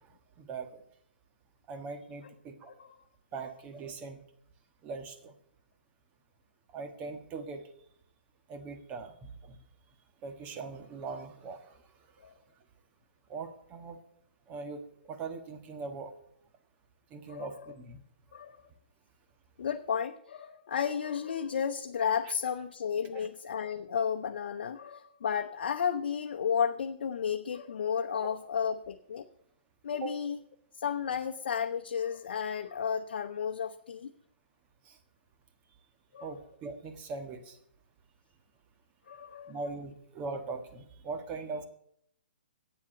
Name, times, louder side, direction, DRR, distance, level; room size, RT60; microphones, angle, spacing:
voice 1, 0.4-0.8 1.7-2.7 3.3-4.2 4.8-5.3 6.7-7.7 8.5-9.6 10.2-11.8 13.3-14.0 14.5-14.8 15.1-16.1 17.1-18.0 22.2-22.3 23.1-23.2 30.0-30.1 34.8-35.0 36.2-37.6 39.5-41.6, right 4 dB, 25° right, 7 dB, 1.5 m, -40 dB
voice 2, 17.3-17.8 18.3-18.6 19.6-29.3 29.8-30.4 30.8-34.1 36.1-36.3 39.1-39.6, left 7 dB, 65° left, 5 dB, 0.8 m, -33 dB
8.8 x 7.3 x 8.8 m, 0.69 s
hypercardioid pair, 140°, 6 cm